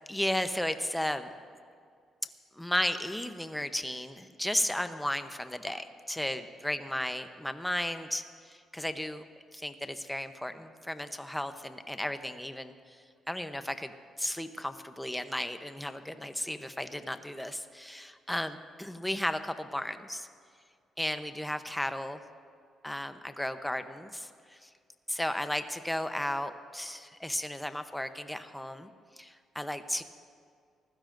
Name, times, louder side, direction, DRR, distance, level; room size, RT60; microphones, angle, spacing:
voice 1, 0.1-1.3 2.6-9.2 9.5-13.9 14.2-20.3 21.0-22.2 22.8-24.7 25.1-28.9 29.2-30.0, left 1 dB, 5° left, 9 dB, 0.8 m, -34 dB
25.0 x 15.5 x 2.6 m, 2.2 s
cardioid pair, 90°, 0 cm